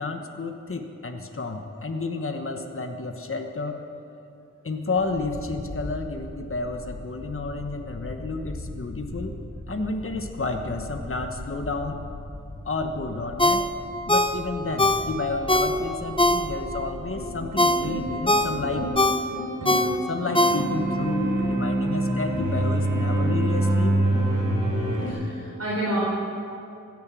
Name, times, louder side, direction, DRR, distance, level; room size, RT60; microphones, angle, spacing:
voice 1, 0.0-3.8 4.6-9.3 9.7-12.0 12.6-13.6 14.1-18.9 19.6-24.0, left 3 dB, 45° left, 4 dB, 1.2 m, -31 dB
sound 1, 5.0-18.9, left 1 dB, 85° left, 2.7 m, -39 dB
Ringtone, 13.4-16.8 17.2-21.0 21.4-21.5, left 1 dB, 15° left, 0.8 m, -23 dB
sound 2, 17.0-25.1, right 1 dB, 85° right, 4.5 m, -26 dB
voice 2, 25.1-26.0, right 1 dB, 50° right, -6 dB, 4.2 m, -29 dB
16.5 x 10.5 x 7.6 m, 2.6 s
wide cardioid pair, 70°, 31 cm